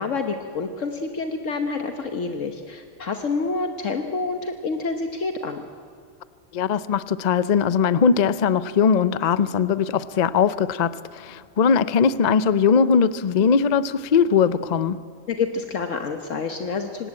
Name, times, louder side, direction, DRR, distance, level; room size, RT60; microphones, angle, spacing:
voice 1, 0.0-5.6 15.3-17.1, left 4 dB, 70° left, 6 dB, 1.4 m, -28 dB
voice 2, 6.5-15.0, left 6 dB, 45° left, 15 dB, 0.6 m, -20 dB
24.5 x 19.0 x 8.8 m, 2.4 s
omnidirectional pair, 1.4 m